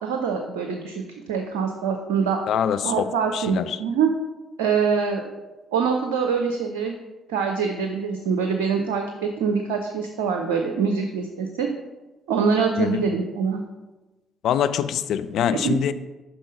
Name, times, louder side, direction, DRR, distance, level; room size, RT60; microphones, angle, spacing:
voice 1, 0.0-2.4 2.8-4.1 4.6-5.3 5.7-6.9 7.3-11.7 12.3-13.6 15.6-15.8, right 6 dB, 75° right, 4 dB, 0.5 m, -24 dB
voice 2, 2.5-3.8 12.8-13.1 14.4-15.9, left 9 dB, 60° left, 12 dB, 0.4 m, -24 dB
5.7 x 5.4 x 5.1 m, 1.1 s
figure-of-eight pair, 50°, 0 cm